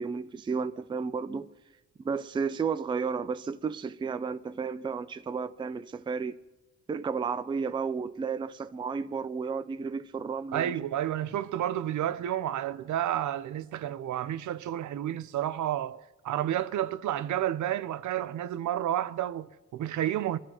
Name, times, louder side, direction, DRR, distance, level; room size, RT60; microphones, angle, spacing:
voice 1, 0.0-1.5 2.0-6.4 6.9-10.7, right 5 dB, 15° right, 0.3 m, -32 dB
voice 2, 10.5-20.4, right 11 dB, 75° right, 0.6 m, -31 dB
24.5 x 12.0 x 3.0 m
cardioid pair, 145°, 30 cm